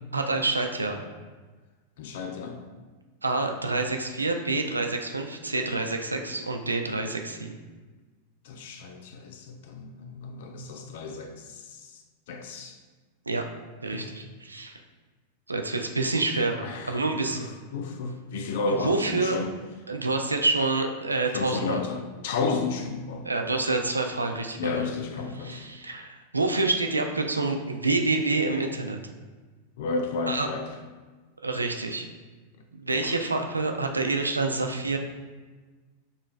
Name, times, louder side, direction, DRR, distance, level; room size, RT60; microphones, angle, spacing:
voice 1, 0.1-1.0 3.2-7.6 13.3-13.4 13.8-14.8 15.5-17.5 18.8-19.4 19.9-21.8 23.2-24.9 25.4-29.0 30.3-30.5 31.4-32.1 32.7-35.0, right 3 dB, 80° right, 4 dB, 0.4 m, -27 dB
voice 2, 2.0-2.6 8.4-12.0 12.3-12.8 13.9-14.1 16.6-17.2 17.7-19.5 21.3-23.2 24.6-25.6 29.8-30.7 32.9-33.2, left 4 dB, 55° left, 5 dB, 0.4 m, -32 dB
6.4 x 3.1 x 2.4 m, 1.3 s
figure-of-eight pair, 90°, 0 cm